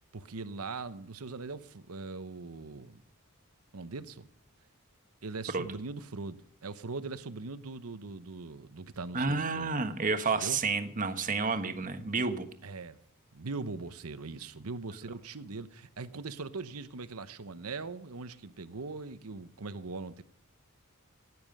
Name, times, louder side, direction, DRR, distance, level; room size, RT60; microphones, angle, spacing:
voice 1, 0.1-3.0 3.7-4.3 5.2-9.7 10.3-10.6 12.6-13.0 13.3-20.2, right 3 dB, 80° right, 0.9 m, -41 dB
voice 2, 9.1-12.5, right 4 dB, 40° right, 1.3 m, -30 dB
16.0 x 9.6 x 5.4 m
head